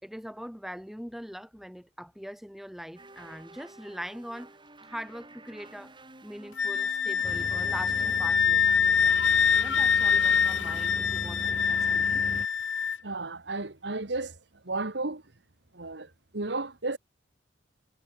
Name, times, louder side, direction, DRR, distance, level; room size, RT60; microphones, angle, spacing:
voice 1, 0.0-4.5 4.9-6.0 6.2-12.2, equal, ahead, 4.2 m, -42 dB
sound 1, 3.0-8.3, right 2 dB, 25° right, 6.4 m, -50 dB
Wind instrument woodwind instrument, 6.6-13.0, left 7 dB, 80° left, 3.4 m, -25 dB
sound 2, 7.2-12.5, left 1 dB, 35° left, 6.0 m, -40 dB
voice 2, 13.0-14.4 14.6-15.2 15.7-17.0, right 2 dB, 65° right, 1.6 m, -33 dB
head